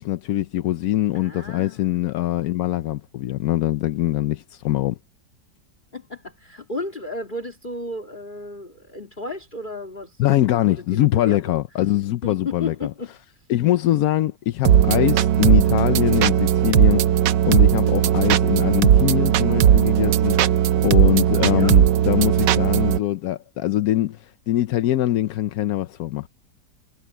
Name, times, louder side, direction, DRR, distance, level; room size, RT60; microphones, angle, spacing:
voice 1, 0.0-5.0 10.2-12.9 13.5-20.4 20.8-26.3, left 14 dB, 70° left, 1.0 m, -23 dB
voice 2, 1.1-2.0 5.9-10.2 10.7-11.6 12.2-13.1 21.5-21.8, left 2 dB, 25° left, 2.3 m, -34 dB
sound 1, 14.6-23.0, right 10 dB, 85° right, 1.4 m, -17 dB
omnidirectional pair, 1.9 m